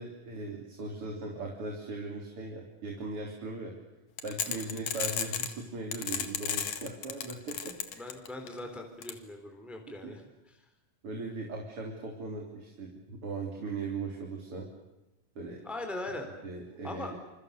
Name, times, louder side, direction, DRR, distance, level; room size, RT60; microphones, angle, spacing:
voice 1, 0.0-3.8 4.2-8.0 9.9-10.1 11.0-14.7 15.4-15.6 16.4-17.2, right 3 dB, 45° right, 0 dB, 4.2 m, -39 dB
sound 1, 4.2-5.5 5.9-8.5 9.0-9.1, left 8 dB, 60° left, 3.0 m, -33 dB
voice 2, 8.0-10.6 15.6-16.3 16.8-17.2, left 2 dB, ahead, 4 dB, 3.9 m, -40 dB
28.0 x 27.0 x 6.9 m, 1.0 s
omnidirectional pair, 3.8 m